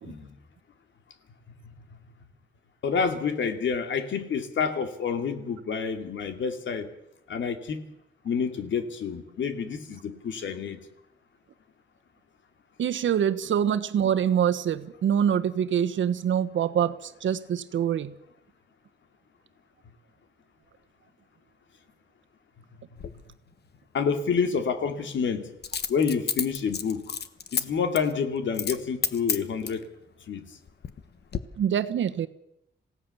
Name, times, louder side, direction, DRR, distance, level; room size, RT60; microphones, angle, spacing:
voice 1, 2.8-6.9 7.3-7.8 8.2-10.8 23.9-25.5 25.9-27.2 27.5-29.8 30.3-30.4, left 6 dB, 80° left, 8 dB, 2.8 m, -28 dB
voice 2, 12.8-18.1 31.6-32.3, right 9 dB, 80° right, 10 dB, 1.3 m, -25 dB
Coin (dropping), 23.0-23.1 25.6-27.6 28.0-28.1 28.5-28.8 29.0-29.8 30.5-31.0 31.3-31.4, left 7 dB, 60° left, 1.4 m, -30 dB
27.5 x 17.0 x 7.2 m, 0.81 s
wide cardioid pair, 120°, 19 cm